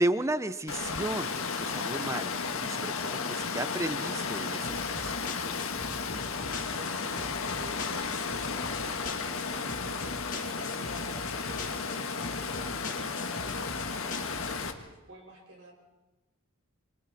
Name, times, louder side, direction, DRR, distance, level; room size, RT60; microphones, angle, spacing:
voice 1, 0.0-2.3 2.6-5.1, right 1 dB, 15° right, 12 dB, 0.7 m, -33 dB
Water, 0.7-14.7, left 5 dB, 65° left, 1.6 m, -33 dB
sound 1, 4.6-14.7, left 3 dB, 35° left, 2.7 m, -42 dB
voice 2, 6.8-10.1 10.4-13.7 14.4-14.8 15.1-15.7, right 2 dB, 55° right, 1 dB, 4.9 m, -49 dB
28.0 x 25.5 x 4.2 m, 1.1 s
head